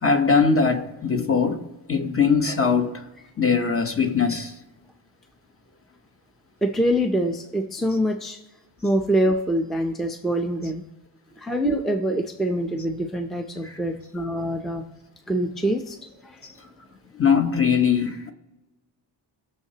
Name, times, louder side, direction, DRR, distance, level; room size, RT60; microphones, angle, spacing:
voice 1, 0.0-3.1 3.4-4.5 16.4-16.5 17.1-18.3, left 5 dB, 30° left, 0.9 m, -21 dB
voice 2, 6.6-8.4 8.8-10.8 11.4-14.8 15.3-16.0 16.2-16.4, equal, ahead, 0.5 m, -25 dB
20.0 x 6.7 x 2.8 m
wide cardioid pair, 160°, 45 cm